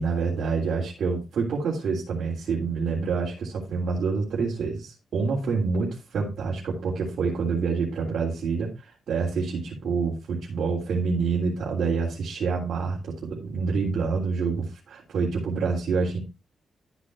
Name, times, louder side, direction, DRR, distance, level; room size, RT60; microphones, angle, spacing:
voice 1, 0.0-16.2, right 5 dB, 70° right, -3 dB, 3.3 m, -27 dB
13.0 x 8.3 x 2.7 m, 0.24 s
cardioid pair, 125°, 0 cm